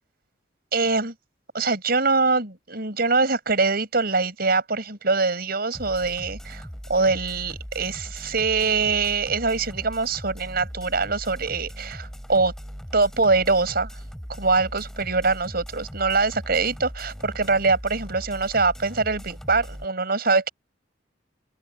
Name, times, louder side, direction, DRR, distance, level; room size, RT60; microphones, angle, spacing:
voice 1, 0.7-1.1 1.5-6.6 6.9-12.5 12.9-13.9 14.4-20.5, right 4 dB, 55° right, 6.1 m, -23 dB
sound 1, 5.7-19.9, equal, 5° left, 5.3 m, -39 dB
head